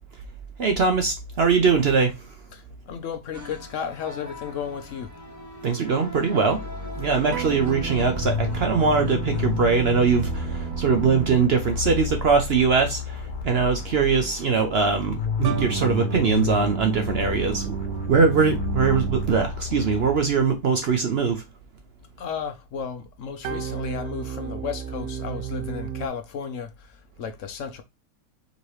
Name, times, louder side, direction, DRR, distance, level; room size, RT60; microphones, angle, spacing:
voice 1, 0.6-2.1 5.6-6.6 7.0-17.7 18.1-21.4, right 5 dB, 55° right, 0.8 m, -22 dB
voice 2, 2.5-5.1 22.2-27.8, left 7 dB, 60° left, 1.0 m, -34 dB
sound 1, 3.3-12.3, equal, 15° right, 0.7 m, -43 dB
sound 2, 6.5-20.6, left 5 dB, 85° left, 1.5 m, -32 dB
sound 3, 7.3-12.0 15.4-19.7 23.4-26.1, right 9 dB, 80° right, 1.1 m, -32 dB
5.1 x 2.9 x 3.1 m
omnidirectional pair, 1.6 m